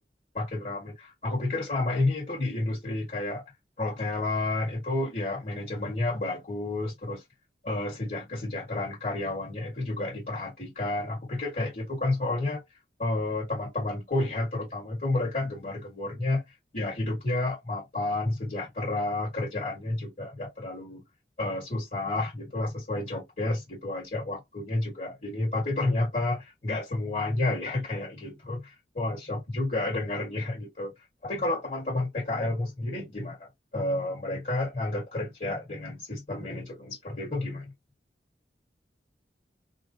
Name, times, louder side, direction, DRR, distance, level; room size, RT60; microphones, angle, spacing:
voice 1, 0.3-3.4 3.8-7.2 7.6-12.6 13.0-16.4 16.7-21.0 21.4-30.9 31.2-37.7, left 2 dB, 50° left, 1.9 m, -30 dB
3.7 x 2.4 x 2.8 m
head